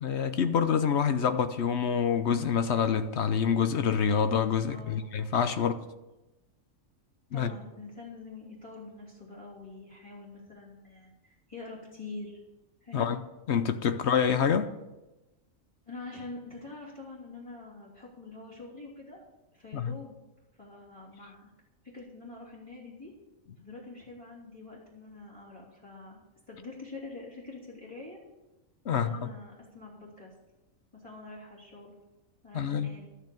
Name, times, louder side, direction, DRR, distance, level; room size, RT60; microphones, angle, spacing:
voice 1, 0.0-5.7 7.3-7.5 12.9-13.2 13.5-14.7 19.7-19.9 28.9-29.3 32.5-32.9, left 7 dB, 60° left, 1.0 m, -26 dB
voice 2, 4.6-5.0 5.6-5.7 7.3-12.4 12.8-13.1 15.8-19.2 19.5-20.2 20.5-21.5 21.8-23.1 23.6-26.2 26.5-28.2 28.9-30.3 30.9-31.9 32.4-33.1, left 3 dB, 20° left, 3.1 m, -45 dB
13.0 x 6.5 x 8.6 m
omnidirectional pair, 1.4 m